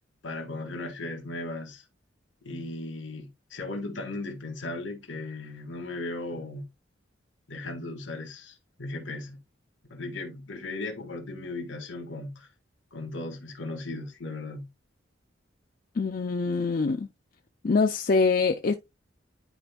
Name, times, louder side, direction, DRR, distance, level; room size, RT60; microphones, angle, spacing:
voice 1, 0.2-1.8 2.4-6.7 7.5-9.4 9.9-12.5 12.9-14.7, left 2 dB, 80° left, 1.6 m, -37 dB
voice 2, 16.0-17.1 17.6-18.7, left 4 dB, 45° left, 0.4 m, -24 dB
10.0 x 4.4 x 2.2 m
head